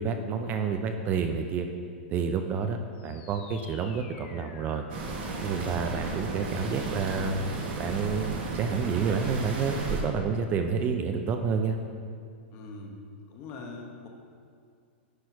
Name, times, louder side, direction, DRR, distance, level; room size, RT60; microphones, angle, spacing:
voice 1, 0.0-1.7 2.1-4.8 5.4-7.4 7.8-11.8, right 5 dB, 25° right, 6 dB, 0.4 m, -29 dB
sound 1, 2.9-8.0, left 6 dB, 65° left, 0.8 m, -50 dB
sound 2, 4.9-10.0, right 3 dB, 55° right, 1.4 m, -34 dB
voice 2, 12.5-14.1, left 3 dB, 40° left, 2 dB, 1.1 m, -42 dB
9.5 x 4.4 x 4.6 m, 2.3 s
supercardioid pair, 145°, 6 cm